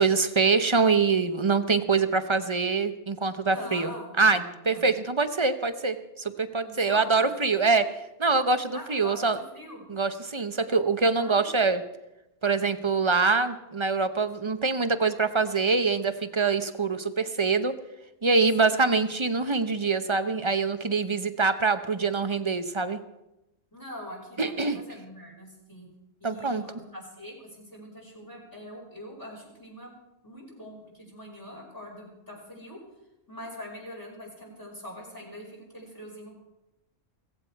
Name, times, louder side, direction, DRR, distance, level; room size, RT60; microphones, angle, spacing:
voice 1, 0.0-3.9 4.2-7.8 8.2-9.4 9.9-11.8 12.4-17.7 18.2-23.0 24.4-24.8 26.2-26.6, right 4 dB, 30° right, 10 dB, 0.7 m, -24 dB
voice 2, 3.5-4.9 6.6-7.4 8.7-9.9 11.2-11.5 18.6-18.9 23.7-25.9 26.2-29.9 30.2-32.8 33.3-36.4, left 1 dB, 15° left, -2 dB, 5.2 m, -43 dB
16.5 x 16.0 x 4.6 m, 0.93 s
omnidirectional pair, 1.3 m